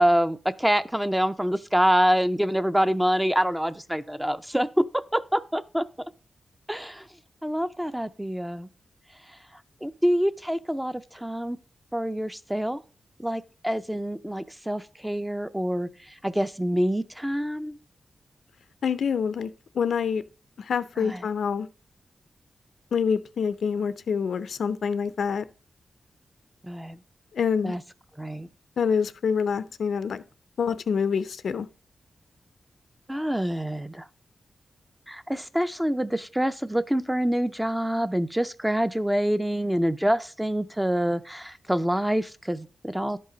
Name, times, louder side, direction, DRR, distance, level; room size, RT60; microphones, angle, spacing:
voice 1, 0.0-5.8 6.7-7.1 7.4-8.7 9.8-11.6 11.9-12.8 13.2-15.9 16.2-17.8 21.0-21.2 26.6-27.0 27.6-27.8 28.2-28.5 33.1-34.1 35.1-43.2, equal, 5° right, 0.4 m, -26 dB
voice 2, 18.8-20.2 20.6-21.7 22.9-25.4 27.3-27.7 28.8-30.2 30.6-31.7, left 6 dB, 80° left, 0.5 m, -26 dB
10.5 x 5.4 x 5.0 m
wide cardioid pair, 130°, 0 cm